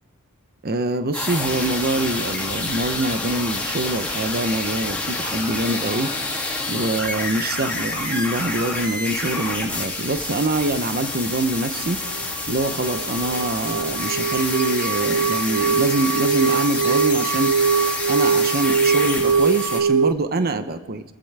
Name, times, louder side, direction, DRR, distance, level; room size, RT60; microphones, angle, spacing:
voice 1, 0.6-6.1 6.7-17.5 18.1-21.0, right 2 dB, 45° right, 9 dB, 0.8 m, -24 dB
sound 1, 0.9-1.0 1.2-1.3 1.6-6.2, left 4 dB, 30° left, 5.1 m, -47 dB
sound 2, 1.1-19.8, left 2 dB, 5° left, 2.7 m, -28 dB
sound 3, 11.8-20.1, right 6 dB, 85° right, 0.6 m, -22 dB
28.5 x 14.5 x 3.5 m, 1.2 s
head